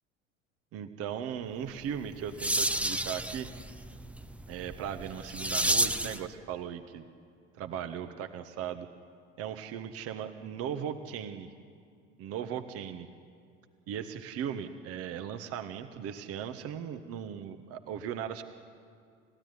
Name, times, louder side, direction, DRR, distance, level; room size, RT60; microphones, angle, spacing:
voice 1, 0.7-3.5 4.5-7.0 7.6-8.9 9.4-11.5 12.2-13.1 13.9-18.4, right 8 dB, 40° right, 9 dB, 1.4 m, -38 dB
sound 1, 1.8-6.3, right 1 dB, 5° right, 0.8 m, -31 dB
30.0 x 15.5 x 9.9 m, 2.3 s
figure-of-eight pair, 70°, 37 cm